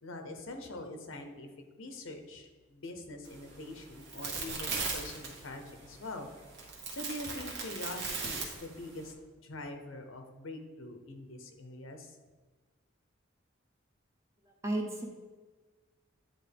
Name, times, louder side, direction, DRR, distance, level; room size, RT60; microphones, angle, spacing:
voice 1, 0.0-1.5 1.8-6.3 6.9-9.1 9.4-12.2, left 2 dB, 85° left, 5 dB, 0.8 m, -44 dB
sound 1, 3.2-9.1, right 4 dB, 55° right, 1.2 m, -39 dB
voice 2, 14.4-15.1, right 1 dB, 15° right, 2 dB, 0.7 m, -34 dB
9.2 x 3.7 x 3.4 m, 1.4 s
head